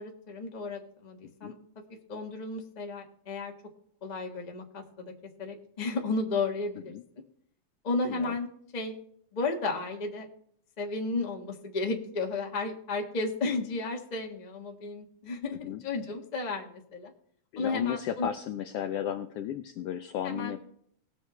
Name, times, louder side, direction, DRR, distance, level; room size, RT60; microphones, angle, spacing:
voice 1, 0.0-1.5 2.1-3.5 4.0-5.1 5.4-6.9 7.8-8.5 8.7-8.9 9.3-10.3 10.8-17.1 17.6-18.3 20.2-20.5, left 3 dB, 35° left, 1 dB, 0.7 m, -33 dB
voice 2, 1.2-1.5 6.9-7.0 8.0-8.4 15.6-15.8 17.5-20.6, left 10 dB, 90° left, 8 dB, 1.3 m, -34 dB
19.5 x 7.7 x 3.2 m, 0.67 s
omnidirectional pair, 3.3 m